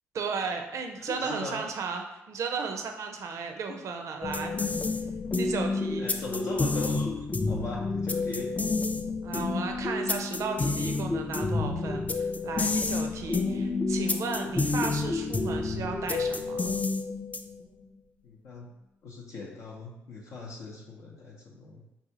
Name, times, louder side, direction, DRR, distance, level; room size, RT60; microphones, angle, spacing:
voice 1, 0.1-4.5 5.4-6.1 9.2-16.7, right 5 dB, 65° right, 4 dB, 0.5 m, -35 dB
voice 2, 1.1-1.6 3.7-3.8 5.2-5.4 6.0-7.1 7.5-8.5 12.5-12.9 18.2-18.7 19.0-21.8, left 3 dB, 75° left, -3 dB, 0.6 m, -39 dB
sound 1, 4.2-17.7, left 3 dB, 25° left, 0.4 m, -29 dB
4.1 x 2.3 x 2.7 m, 0.92 s
supercardioid pair, 55°, 6 cm